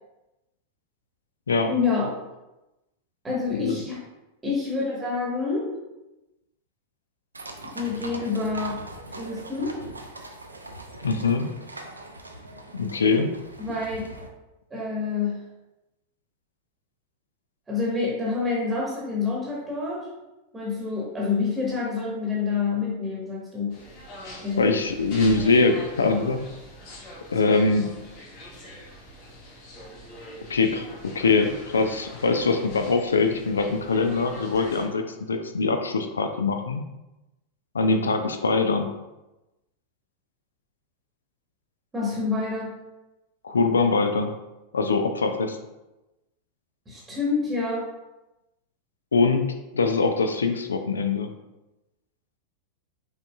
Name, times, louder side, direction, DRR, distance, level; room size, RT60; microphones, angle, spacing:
voice 1, 1.7-2.1 3.2-4.0 4.4-5.7 7.7-8.8 9.1-9.7 13.6-14.1 14.7-15.4 17.7-20.1 20.5-23.8 24.4-24.6 41.9-42.7 46.9-47.9, left 4 dB, 15° right, -4 dB, 1.1 m, -27 dB
sound 1, 7.3-14.3, right 2 dB, 80° right, 0.5 m, -41 dB
voice 2, 11.0-11.5 12.7-13.3 24.6-26.4 27.3-27.9 30.5-36.8 37.7-38.9 43.4-44.3 44.7-45.6 49.1-49.4 49.7-51.3, left 4 dB, 70° left, 6 dB, 0.4 m, -23 dB
sound 2, 23.7-34.9, left 1 dB, 45° left, 1.5 m, -43 dB
5.2 x 3.9 x 2.3 m, 0.99 s
figure-of-eight pair, 90°, 0 cm